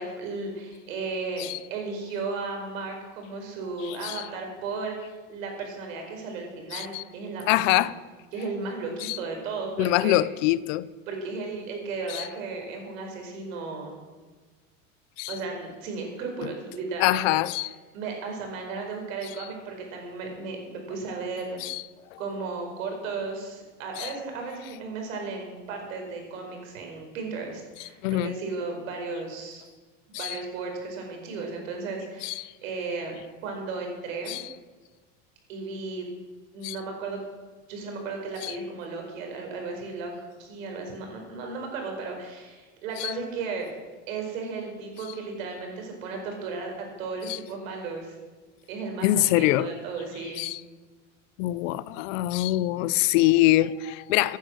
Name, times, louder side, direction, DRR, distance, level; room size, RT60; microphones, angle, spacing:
voice 1, 0.0-7.9 8.3-10.2 11.1-13.9 15.3-17.4 17.9-21.6 22.2-29.6 30.1-33.2 33.4-34.4 35.5-36.1 36.5-37.2 37.7-43.7 44.1-48.2 48.7-50.5, right 4 dB, 90° right, 4.9 m, -35 dB
voice 2, 3.9-4.2 6.7-7.0 7.5-7.9 9.0-9.2 9.8-10.9 12.1-12.2 15.2-15.3 17.0-17.7 21.6-21.8 22.1-22.2 24.0-24.1 28.0-28.4 30.1-30.4 32.2-32.5 34.3-34.4 36.6-36.8 38.4-38.6 43.0-43.1 47.3-47.4 49.0-49.7 50.4-50.6 51.4-54.4, left 16 dB, 75° left, 0.7 m, -24 dB
15.5 x 10.5 x 6.4 m
supercardioid pair, 130°, 39 cm